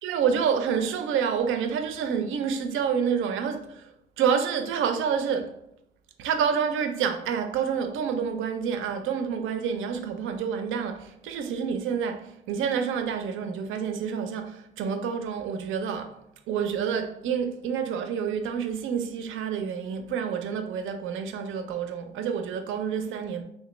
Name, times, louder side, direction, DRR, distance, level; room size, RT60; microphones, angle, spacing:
voice 1, 0.0-3.9 4.2-5.5 6.2-16.2 16.5-23.4, right 7 dB, 80° right, 0.4 m, -28 dB
3.3 x 2.8 x 3.0 m
cardioid pair, 90°, 20 cm